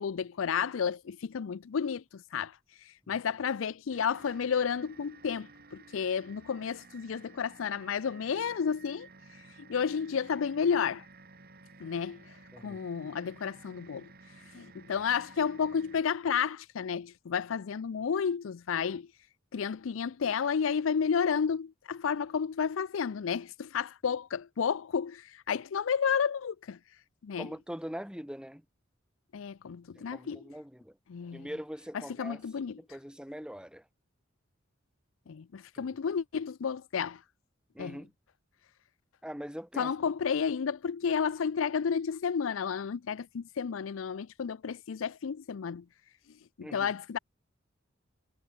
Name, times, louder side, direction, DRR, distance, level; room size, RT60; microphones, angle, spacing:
voice 1, 0.0-2.6 3.1-9.1 9.6-11.0 11.8-12.2 12.6-14.1 14.5-19.1 19.5-26.8 27.2-27.5 29.3-30.4 31.1-31.5 32.2-32.8 35.3-37.2 37.8-38.0 39.8-45.8 46.6-47.2, left 6 dB, 80° left, 0.5 m, -31 dB
sound 1, 3.9-16.0, right 3 dB, 50° right, 7.1 m, -55 dB
voice 2, 27.4-28.6 30.0-31.0 31.3-32.4 32.8-33.9 35.8-36.0 37.7-38.1 39.2-39.9 46.6-46.9, equal, 5° right, 4.1 m, -42 dB
head